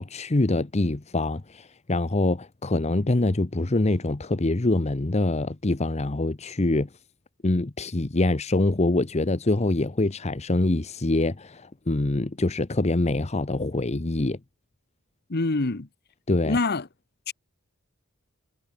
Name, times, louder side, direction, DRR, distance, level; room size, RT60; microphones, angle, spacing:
voice 1, 0.0-6.9 7.4-14.4 16.3-16.6, left 2 dB, 30° left, 0.9 m, -25 dB
voice 2, 15.3-15.9 16.4-16.9 17.3-17.4, left 3 dB, 50° left, 1.2 m, -25 dB
head